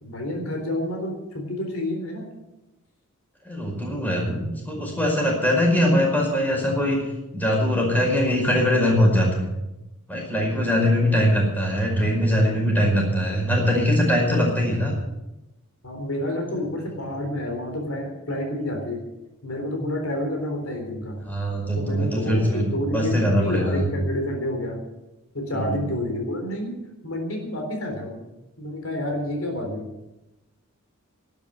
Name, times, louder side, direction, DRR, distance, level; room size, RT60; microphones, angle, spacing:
voice 1, 0.0-2.3 15.8-19.0 19.4-21.2 21.8-24.8 25.3-26.8 27.0-28.2 28.6-29.9, left 1 dB, 75° left, 2 dB, 3.8 m, -29 dB
voice 2, 3.4-7.0 7.3-9.5 10.1-14.9 21.3-23.9 25.5-25.8, equal, 10° left, -2 dB, 5.1 m, -22 dB
12.0 x 10.5 x 9.2 m, 0.98 s
head